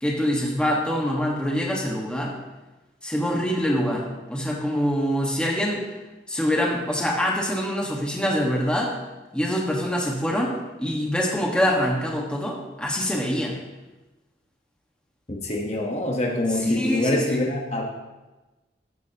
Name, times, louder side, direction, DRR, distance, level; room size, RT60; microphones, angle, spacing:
voice 1, 0.0-2.3 3.0-5.8 6.3-8.9 9.3-10.5 10.8-13.6 16.6-17.4, equal, 5° left, -2 dB, 1.6 m, -25 dB
voice 2, 15.3-17.8, left 1 dB, 35° left, 0 dB, 1.3 m, -25 dB
14.5 x 10.5 x 3.0 m, 1.1 s
head